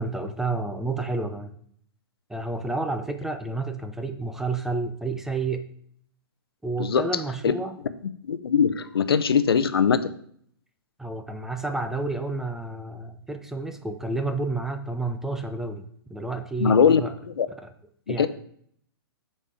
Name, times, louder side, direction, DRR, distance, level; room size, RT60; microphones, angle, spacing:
voice 1, 0.0-1.5 2.3-5.6 6.6-7.8 11.0-17.1 17.6-17.7 18.1-18.3, right 3 dB, 5° right, 8 dB, 0.5 m, -30 dB
voice 2, 8.3-10.1 16.6-17.0 17.3-17.5 18.1-18.3, left 6 dB, 85° left, 13 dB, 0.6 m, -21 dB
8.5 x 4.3 x 4.9 m, 0.63 s
hypercardioid pair, 135°, 12 cm